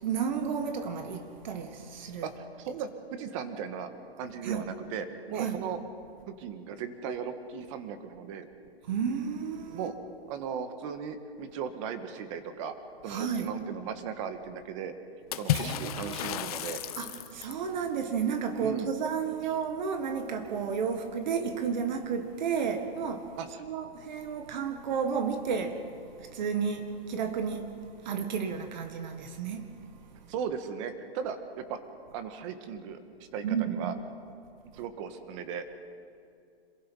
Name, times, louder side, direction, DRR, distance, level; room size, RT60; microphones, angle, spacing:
voice 1, 0.0-2.3 4.4-4.7 5.4-5.7 8.9-10.0 13.1-13.6 15.5-16.4 17.0-23.3 23.6-25.9 26.2-29.7 33.4-34.0, right 6 dB, 45° right, 1.7 m, -32 dB
voice 2, 2.2-3.9 4.2-5.8 6.3-8.5 9.7-9.9 10.3-12.7 13.0-14.9 15.4-16.8 18.6-18.9 23.4-23.6 30.3-31.8 32.1-33.0 33.3-33.9 34.7-35.7, right 7 dB, 30° right, 1.6 m, -37 dB
Water / Splash splatter, 15.3-17.7, left 11 dB, 35° left, 1.2 m, -32 dB
27.0 x 22.5 x 5.5 m
hypercardioid pair, 160°, 31 cm